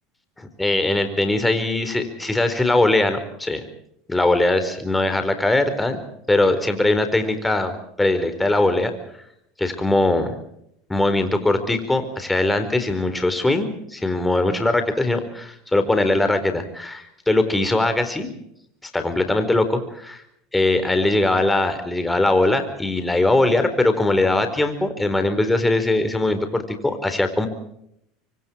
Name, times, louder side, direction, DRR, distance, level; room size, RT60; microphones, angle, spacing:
voice 1, 0.4-3.6 4.1-6.0 6.3-8.9 9.6-10.3 10.9-18.3 18.9-20.2 20.5-27.5, left 2 dB, 10° left, 8 dB, 4.4 m, -21 dB
26.0 x 24.5 x 4.6 m, 0.74 s
supercardioid pair, 105°, 0 cm